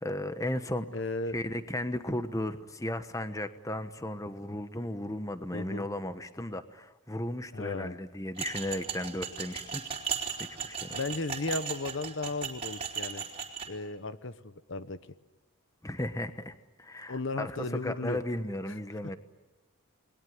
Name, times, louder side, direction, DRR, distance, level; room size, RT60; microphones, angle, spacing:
voice 1, 0.0-0.9 1.3-9.8 10.4-11.0 15.8-19.2, left 1 dB, 15° left, 10 dB, 1.1 m, -35 dB
voice 2, 0.9-1.4 5.5-5.9 7.5-8.0 10.9-13.2 13.7-15.0 17.1-18.2 18.7-18.8, left 3 dB, 55° left, 12 dB, 1.0 m, -35 dB
sound 1, 8.4-13.7, right 7 dB, 25° right, 3.5 m, -37 dB
29.0 x 21.0 x 9.6 m, 1.2 s
head